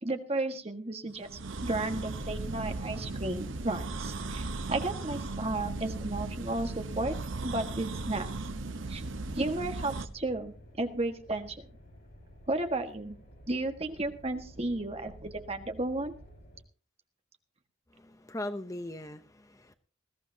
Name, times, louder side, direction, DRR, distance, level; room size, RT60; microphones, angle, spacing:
voice 1, 0.0-7.1 7.4-8.3 8.9-9.0 9.3-11.7 12.5-13.2 13.5-16.1, right 2 dB, 30° right, 6 dB, 1.5 m, -33 dB
sound 1, 1.2-10.1, right 3 dB, 75° right, 0.9 m, -37 dB
sound 2, 2.1-16.6, equal, 55° left, 5.5 m, -50 dB
voice 2, 17.9-19.7, left 1 dB, 15° left, 9 dB, 0.7 m, -40 dB
20.5 x 15.0 x 2.8 m, 0.36 s
head